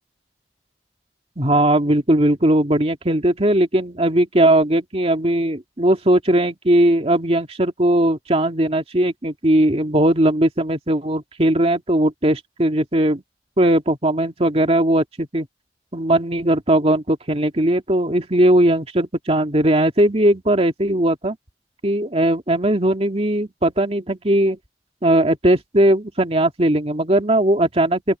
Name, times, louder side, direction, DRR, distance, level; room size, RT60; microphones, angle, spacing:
voice 1, 1.4-13.2 13.6-15.5 15.9-21.4 21.8-24.6 25.0-28.2, right 1 dB, 35° right, 2.3 m, -18 dB
open air
head